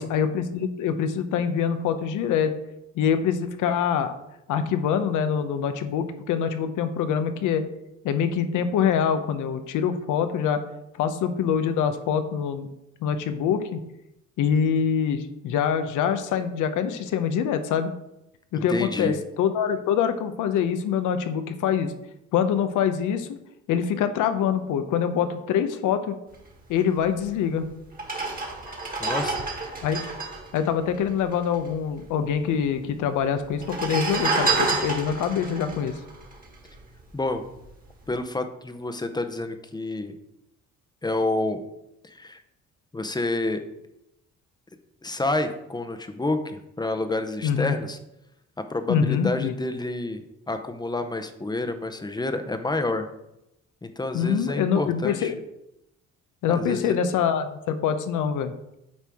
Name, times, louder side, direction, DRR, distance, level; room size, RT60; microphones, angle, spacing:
voice 1, 0.0-2.5 3.0-4.1 4.5-7.6 8.0-10.6 11.0-12.7 13.0-13.8 14.4-17.9 18.5-21.9 22.3-23.3 23.7-26.2 26.7-27.7 29.8-30.0 30.5-35.9 47.4-47.8 48.9-49.5 54.1-55.4 56.4-58.5, left 7 dB, 85° left, 9 dB, 0.7 m, -25 dB
voice 2, 18.5-19.2 29.0-29.4 37.1-37.4 38.1-40.1 41.0-41.6 42.0-42.4 42.9-43.6 45.0-48.0 48.7-50.2 50.5-53.1 53.8-55.3 56.5-57.0, left 2 dB, 15° left, 8 dB, 0.7 m, -28 dB
sound 1, 27.3-27.4 27.9-31.6 31.9-32.0 32.1-32.8 33.5-37.0 37.5-37.7, right 3 dB, 30° right, 1.6 m, -29 dB
8.6 x 4.5 x 3.5 m, 0.86 s
cardioid pair, 90°, 30 cm